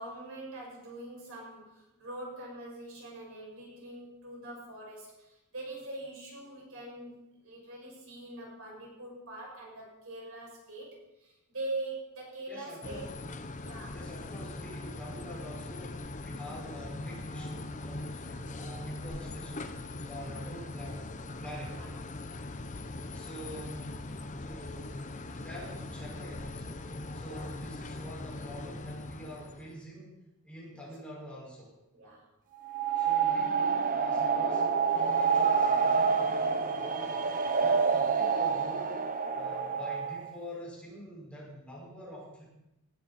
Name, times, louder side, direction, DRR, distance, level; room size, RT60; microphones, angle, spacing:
voice 1, 0.0-13.1 13.6-14.0 21.7-21.9 27.3-27.5 30.7-30.9 31.9-32.2, right 2 dB, 65° right, -3 dB, 6.7 m, -43 dB
voice 2, 12.5-13.1 13.9-21.1 21.4-21.8 23.1-24.0 24.4-26.8 27.1-30.2 30.4-31.7 32.9-39.0 39.3-42.4, equal, 5° left, -5 dB, 5.5 m, -46 dB
sound 1, 12.8-29.8, left 2 dB, 35° left, 0.9 m, -41 dB
sound 2, 32.6-40.3, right 5 dB, 40° right, 1.0 m, -27 dB
19.0 x 12.5 x 4.3 m, 0.89 s
head